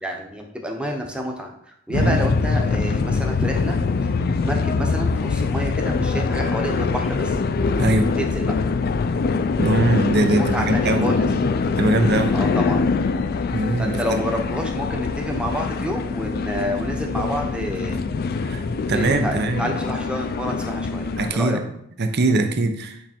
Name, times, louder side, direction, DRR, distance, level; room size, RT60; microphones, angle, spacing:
voice 1, 0.0-4.1 4.4-7.4 8.2-8.5 10.3-11.3 12.3-12.8 13.7-18.0 18.9-21.6, equal, 5° right, 1 dB, 0.9 m, -29 dB
sound 1, 1.9-21.3, left 4 dB, 50° left, 0.4 m, -23 dB
voice 2, 7.8-8.1 9.6-11.1 11.8-12.4 13.5-14.2 18.1-18.6 18.9-19.8 21.2-21.6 22.0-23.0, right 2 dB, 55° right, 7 dB, 0.7 m, -21 dB
8.6 x 3.4 x 4.3 m, 0.72 s
head